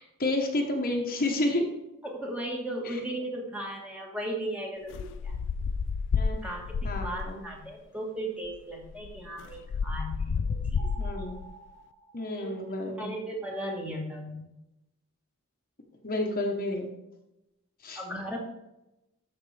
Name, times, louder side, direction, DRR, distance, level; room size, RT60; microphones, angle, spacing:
voice 1, 0.2-1.6 2.8-3.0 6.1-6.4 6.8-7.4 11.0-11.3 12.1-13.1 16.0-16.9 17.8-18.0, left 1 dB, 40° left, 1 dB, 1.1 m, -30 dB
voice 2, 2.0-5.4 6.4-6.6 6.9-10.9 12.3-12.5 13.0-14.5 18.0-18.4, right 1 dB, 5° right, -1 dB, 1.6 m, -36 dB
sound 1, 4.9-7.5 8.4-8.5 8.8-11.5, left 5 dB, 55° left, 0.3 m, -31 dB
sound 2, 10.8-13.2, right 3 dB, 75° right, 3.2 m, -50 dB
13.0 x 5.3 x 3.4 m, 0.93 s
head